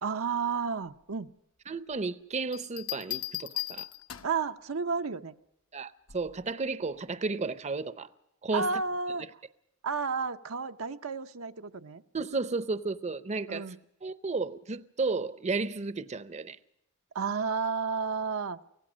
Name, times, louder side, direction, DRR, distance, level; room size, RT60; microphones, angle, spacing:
voice 1, 0.0-1.3 4.2-5.3 8.5-9.2 9.8-12.0 13.5-13.8 17.1-18.6, right 5 dB, 80° right, 0.8 m, -31 dB
voice 2, 1.7-3.9 5.7-8.1 8.4-8.8 12.1-13.7 14.0-16.6, right 3 dB, 35° right, 0.7 m, -33 dB
Bell, 2.5-4.5 6.1-6.4, left 14 dB, 70° left, 1.0 m, -37 dB
24.5 x 17.0 x 6.3 m
head